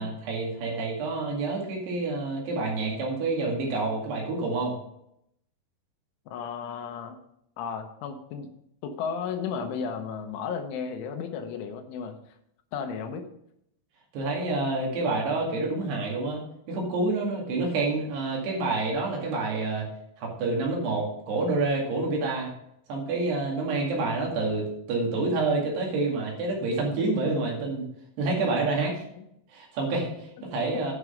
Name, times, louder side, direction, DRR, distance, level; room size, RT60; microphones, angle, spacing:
voice 1, 0.0-4.8 14.1-16.4 16.7-19.9 20.2-22.5 22.9-24.6 24.9-27.9 28.2-28.9 29.5-30.9, right 3 dB, 60° right, -2 dB, 4.0 m, -28 dB
voice 2, 6.3-7.2 7.6-8.5 8.8-12.2 12.7-13.3 29.2-29.3, left 6 dB, 85° left, 6 dB, 3.4 m, -34 dB
11.0 x 6.2 x 5.2 m, 0.75 s
omnidirectional pair, 5.6 m